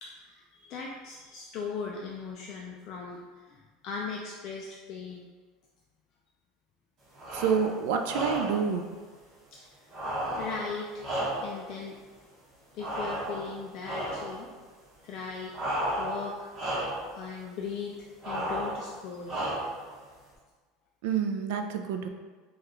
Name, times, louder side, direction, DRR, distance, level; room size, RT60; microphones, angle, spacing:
voice 1, 0.0-5.3 9.5-9.9 10.4-11.0 11.4-12.0 12.7-14.5 15.0-16.5 17.1-17.9 18.2-19.4, left 5 dB, 40° left, -1 dB, 0.3 m, -39 dB
sound 1, 7.1-7.7 8.0-8.7 9.9-11.7 12.8-13.5 13.8-14.3 15.5-16.3 16.5-17.1 18.2-18.8 19.3-19.9, right 1 dB, 25° right, 1.0 m, -33 dB
voice 2, 7.3-8.9 21.0-22.1, right 6 dB, 70° right, 5 dB, 0.4 m, -28 dB
4.8 x 2.3 x 3.0 m, 1.4 s
cardioid pair, 165°, 0 cm